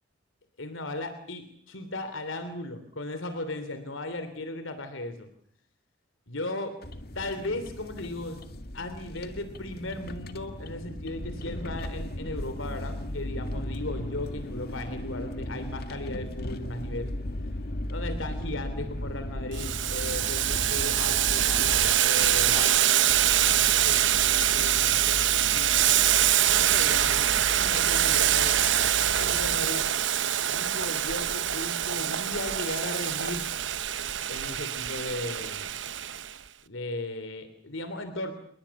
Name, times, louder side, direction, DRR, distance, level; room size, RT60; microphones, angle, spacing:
voice 1, 0.6-5.3 6.3-6.8 7.1-8.4 8.7-17.1 17.9-23.1 23.4-25.8 26.3-28.6 29.0-29.9 30.5-33.5 34.3-35.6 36.7-38.3, left 2 dB, 80° left, 10 dB, 3.0 m, -36 dB
sound 1, 6.8-22.0, left 1 dB, 50° left, 2.0 m, -36 dB
Boiling, 19.5-36.3, right 11 dB, 70° right, 1.0 m, -24 dB
sound 2, 22.2-22.7 23.1-29.6, right 1 dB, 20° right, 4.0 m, -38 dB
29.0 x 21.5 x 7.1 m, 0.65 s
head